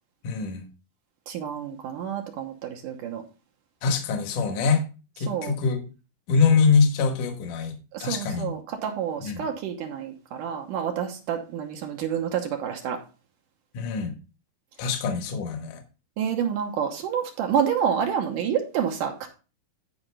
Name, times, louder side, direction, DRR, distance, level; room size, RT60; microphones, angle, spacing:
voice 1, 0.2-0.6 3.8-4.8 5.2-5.9 6.3-8.5 9.2-9.4 13.7-14.1 14.8-15.8, left 5 dB, 65° left, 2.7 m, -24 dB
voice 2, 1.3-3.2 5.3-5.5 7.9-13.0 16.2-19.3, right 8 dB, 70° right, 2.5 m, -28 dB
14.0 x 5.2 x 3.3 m
omnidirectional pair, 4.1 m